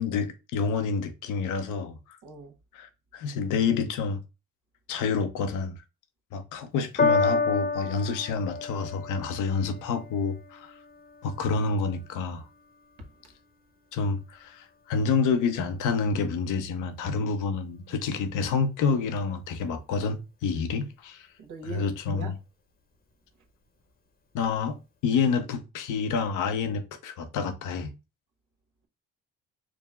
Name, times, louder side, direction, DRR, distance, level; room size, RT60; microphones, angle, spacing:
voice 1, 0.0-2.0 2.7-4.2 4.9-5.8 6.3-10.7 11.2-12.4 13.9-21.3 21.6-22.4 24.3-27.9, left 5 dB, 90° left, 0.8 m, -28 dB
voice 2, 2.2-2.5 13.0-13.1 17.9-18.0 21.4-22.3, right 4 dB, 85° right, 1.2 m, -41 dB
Piano, 7.0-13.6 14.4-14.5, left 4 dB, 30° left, 0.8 m, -31 dB
5.0 x 2.0 x 3.5 m
cardioid pair, 90°, 30 cm